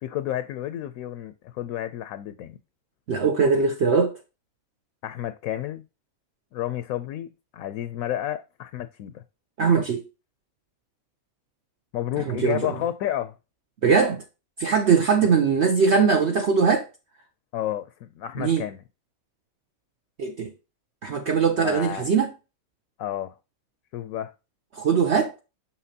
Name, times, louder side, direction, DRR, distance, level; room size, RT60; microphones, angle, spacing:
voice 1, 0.0-2.6 5.0-5.8 6.5-9.2 11.9-13.4 17.5-18.8 21.6-22.1 23.0-23.3 23.9-24.3, left 12 dB, 75° left, 1.0 m, -31 dB
voice 2, 3.1-4.1 9.6-10.0 12.3-12.7 13.8-14.2 14.6-16.9 18.4-18.6 20.2-20.5 21.0-22.3 24.7-25.3, right 5 dB, 55° right, 0.9 m, -21 dB
6.1 x 5.8 x 2.7 m
omnidirectional pair, 1.5 m